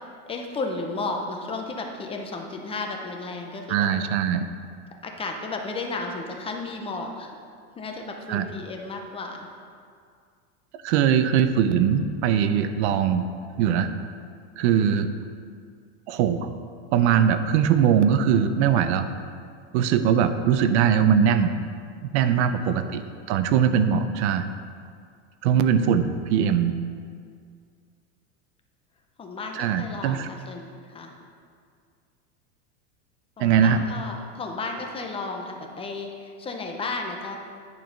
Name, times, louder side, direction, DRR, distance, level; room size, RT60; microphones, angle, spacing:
voice 1, 0.3-3.9 5.0-7.3 7.8-9.5 22.3-23.0 25.8-25.9 29.2-31.1 33.4-37.4, left 3 dB, 15° left, 2 dB, 0.6 m, -33 dB
voice 2, 3.7-4.5 8.3-8.5 10.8-13.2 13.6-13.9 14.6-15.1 16.1-16.5 16.9-19.1 19.7-21.6 22.1-23.0 23.3-24.5 25.4-26.8 29.6-30.3 33.4-33.8, right 8 dB, 75° right, 10 dB, 0.6 m, -21 dB
9.8 x 4.6 x 5.2 m, 2.2 s
supercardioid pair, 155°, 34 cm